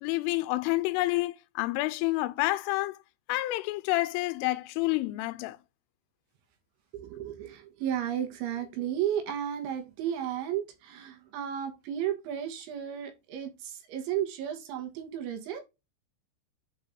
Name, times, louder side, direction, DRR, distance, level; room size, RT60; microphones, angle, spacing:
voice 1, 0.0-3.0 3.3-5.6, left 19 dB, 90° left, 3.1 m, -29 dB
voice 2, 6.9-15.6, right 10 dB, 75° right, 3.5 m, -33 dB
8.0 x 4.1 x 3.6 m
omnidirectional pair, 5.6 m